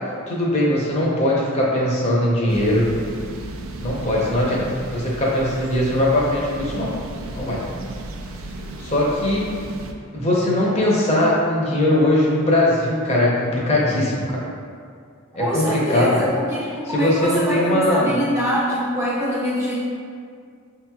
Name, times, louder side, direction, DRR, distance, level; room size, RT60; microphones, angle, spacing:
voice 1, 0.3-2.8 3.8-4.6 4.9-6.9 7.3-7.6 8.8-9.5 10.1-14.4 15.3-16.2 16.9-18.1, left 1 dB, 30° left, -5 dB, 0.7 m, -20 dB
sound 1, 2.5-9.9, right 1 dB, 70° right, 0.4 m, -35 dB
voice 2, 15.3-19.8, equal, 15° right, -7 dB, 0.5 m, -24 dB
6.2 x 2.9 x 2.3 m, 2.2 s
head